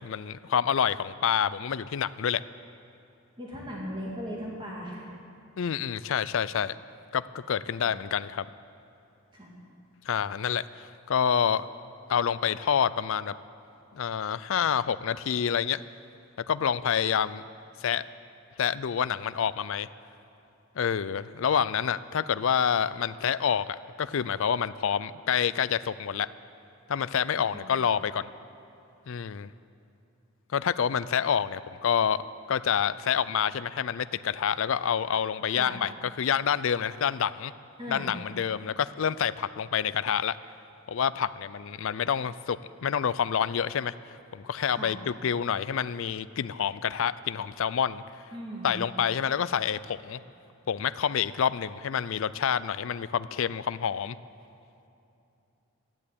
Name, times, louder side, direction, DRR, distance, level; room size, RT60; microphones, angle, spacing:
voice 1, 0.0-2.4 5.6-6.8 7.1-8.5 10.1-11.7 12.1-13.4 13.9-15.8 16.5-17.4 17.8-18.0 18.6-19.9 20.8-26.3 26.9-28.3 29.1-29.5 30.5-32.2 32.5-35.9 36.2-37.5 37.9-40.4 40.9-43.9 44.3-48.0 48.6-50.2 50.7-54.2, left 8 dB, 60° left, 16 dB, 0.4 m, -27 dB
voice 2, 3.4-5.1 7.8-8.0 9.3-9.5 27.5-27.7 35.5-35.7 37.8-38.2 44.7-45.0 48.3-48.8, equal, 20° right, -4 dB, 2.2 m, -38 dB
13.0 x 10.5 x 8.4 m, 2.8 s
head